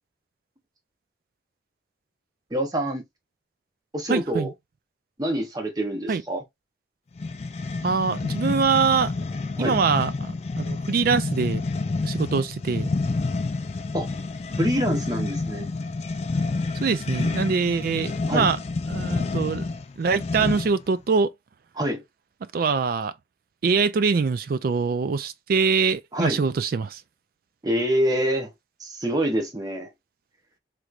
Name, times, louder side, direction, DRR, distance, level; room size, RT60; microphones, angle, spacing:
voice 1, 2.5-3.0 3.9-4.5 5.2-6.4 9.6-9.8 13.9-14.1 14.6-15.7 18.3-18.5 21.8-22.0 26.1-26.4 27.6-28.5 28.8-29.9, equal, 20° right, 0.8 m, -26 dB
voice 2, 4.1-4.5 6.1-6.2 7.8-9.1 9.6-11.6 12.0-12.9 16.8-18.6 18.9-19.6 20.0-21.3 22.5-23.1 23.6-27.0, right 5 dB, 50° right, 0.3 m, -23 dB
sound 1, 7.2-20.9, left 3 dB, 35° left, 0.3 m, -29 dB
3.2 x 3.0 x 2.4 m
head